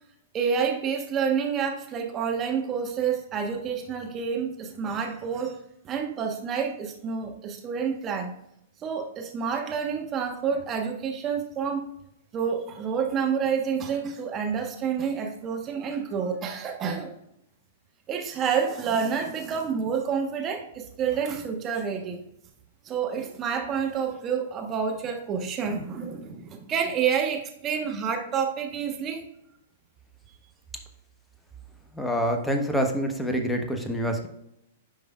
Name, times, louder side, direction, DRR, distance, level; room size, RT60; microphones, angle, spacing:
voice 1, 0.3-5.6 5.8-8.3 8.8-11.9 12.3-17.1 18.1-22.3 22.8-29.2, right 6 dB, 30° right, 3 dB, 1.2 m, -28 dB
voice 2, 31.9-34.3, equal, 5° left, 3 dB, 1.2 m, -26 dB
10.0 x 5.4 x 2.4 m, 0.78 s
hypercardioid pair, 110°, 0 cm